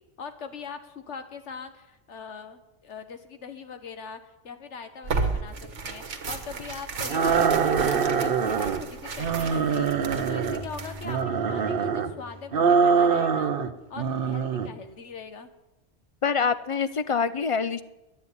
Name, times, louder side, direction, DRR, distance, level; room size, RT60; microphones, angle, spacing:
voice 1, 0.2-9.9 10.3-13.5 13.9-15.5, left 5 dB, 80° left, 9 dB, 1.5 m, -41 dB
Tearing, 5.0-11.2, right 4 dB, 85° right, 1.6 m, -34 dB
sound 1, 7.1-8.8 9.2-10.7 11.0-12.1 12.5-13.7 14.0-14.7, right 6 dB, 55° right, 0.9 m, -24 dB
Bowed string instrument, 9.8-13.5, left 1 dB, 30° right, 1.4 m, -43 dB
voice 2, 16.2-17.8, left 5 dB, 55° left, 13 dB, 0.3 m, -25 dB
11.0 x 10.0 x 9.6 m, 1.0 s
omnidirectional pair, 1.2 m